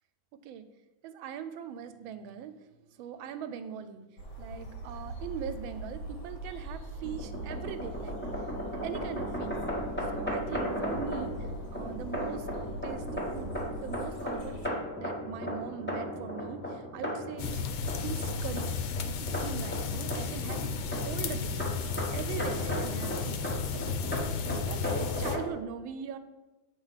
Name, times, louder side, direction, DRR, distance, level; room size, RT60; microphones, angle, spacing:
voice 1, 1.0-2.5 3.0-4.0 4.4-8.2 8.8-9.6 10.1-11.3 11.7-12.5 12.8-17.6 18.0-18.8 19.0-20.8 21.0-21.6 22.0-23.4 24.4-26.2, right 8 dB, 90° right, 11 dB, 1.4 m, -41 dB
sound 1, 4.2-14.7, right 1 dB, 60° left, 1.9 m, -42 dB
sound 2, 7.0-25.5, equal, 10° left, 0.9 m, -36 dB
sound 3, 17.4-25.4, left 5 dB, 85° left, 1.5 m, -33 dB
7.9 x 3.3 x 5.6 m, 1.1 s
omnidirectional pair, 2.1 m